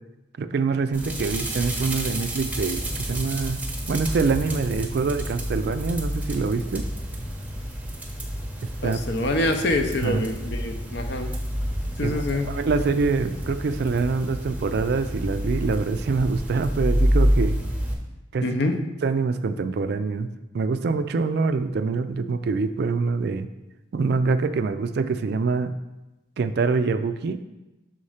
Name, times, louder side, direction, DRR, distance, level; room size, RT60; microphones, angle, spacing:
voice 1, 0.4-3.6 3.9-6.9 8.6-9.1 10.0-10.3 12.0-17.6 18.3-18.5 19.0-20.3 20.5-23.5 23.9-25.7 26.4-27.4, right 4 dB, 50° right, 10 dB, 0.3 m, -25 dB
sound 1, 0.9-17.9, equal, 10° right, 0.7 m, -29 dB
voice 2, 8.8-11.3 12.0-12.5 18.4-18.8, left 2 dB, 55° left, 6 dB, 0.6 m, -25 dB
6.3 x 4.2 x 4.9 m, 1.0 s
head